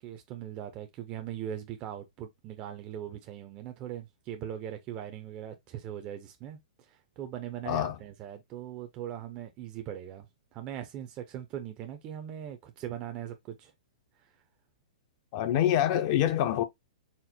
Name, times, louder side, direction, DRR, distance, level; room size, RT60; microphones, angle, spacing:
voice 1, 0.0-13.7 14.2-14.3, right 10 dB, 30° right, 0.6 m, -40 dB
voice 2, 7.7-8.0 15.3-16.6, left 11 dB, 40° left, 0.6 m, -26 dB
4.3 x 2.0 x 4.2 m
hypercardioid pair, 140°, 4 cm